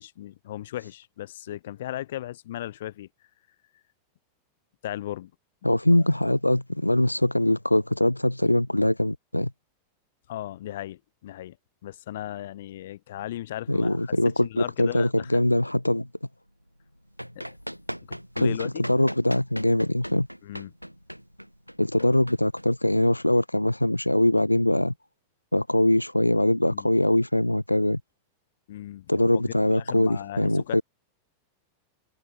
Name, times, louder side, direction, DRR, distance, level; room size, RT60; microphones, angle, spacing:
voice 1, 0.0-3.1 4.8-5.3 5.7-5.8 10.3-11.6 11.8-14.0 14.2-15.4 17.3-17.5 18.1-18.9 20.4-20.7 22.0-22.1 26.6-26.9 28.7-29.4 29.7-30.8, left 13 dB, 55° left, 1.0 m, -36 dB
voice 2, 5.6-9.5 13.7-16.1 18.4-20.3 21.8-24.9 25.5-28.0 29.1-30.8, left 1 dB, 85° left, 0.4 m, -22 dB
Run, 16.8-23.3, equal, 90° right, 0.7 m, -39 dB
figure-of-eight pair, 90°, 0 cm